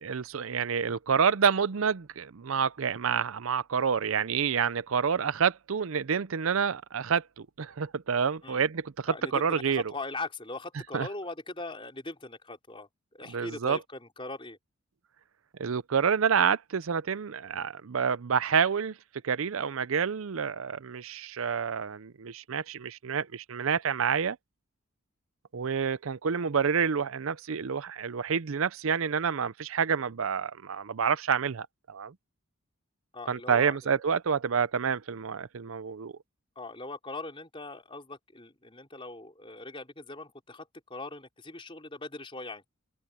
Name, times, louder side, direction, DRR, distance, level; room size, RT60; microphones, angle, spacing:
voice 1, 0.0-9.8 10.9-11.1 13.3-13.8 15.6-19.0 19.2-24.4 25.5-32.1 33.3-36.1, right 6 dB, 70° right, 0.6 m, -28 dB
voice 2, 9.1-12.9 13.1-14.6 33.1-34.0 36.6-42.7, left 2 dB, 25° left, 4.1 m, -40 dB
open air
head